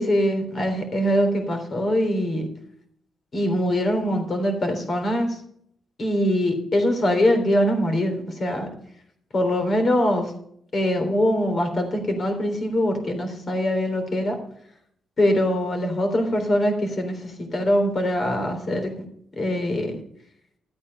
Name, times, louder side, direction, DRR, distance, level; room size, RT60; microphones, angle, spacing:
voice 1, 0.0-2.5 3.3-5.4 6.0-8.7 9.3-10.3 10.7-14.3 15.2-18.9 19.4-20.0, equal, 40° left, 5 dB, 3.5 m, -23 dB
13.5 x 8.6 x 5.4 m, 0.67 s
cardioid pair, 125°, 0 cm